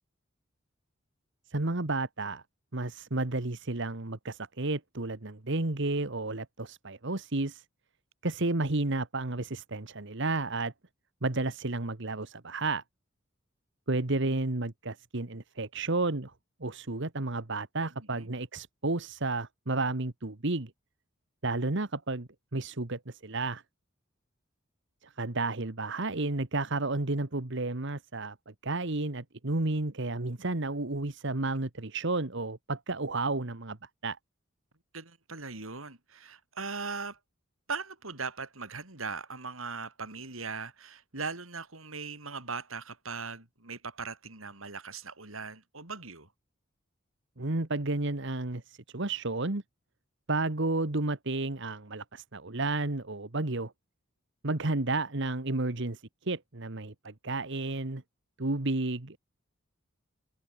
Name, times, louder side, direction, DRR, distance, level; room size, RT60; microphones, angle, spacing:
voice 1, 1.5-2.4 2.7-7.6 8.2-10.7 11.2-12.8 13.9-16.3 16.6-20.7 21.4-23.6 25.0-33.8 34.0-34.2 47.4-49.6 50.3-53.7 54.4-58.0 58.4-59.2, right 2 dB, 65° right, 1.6 m, -32 dB
voice 2, 18.0-18.3 34.9-37.2 37.7-46.3, right 4 dB, 90° right, 5.0 m, -39 dB
head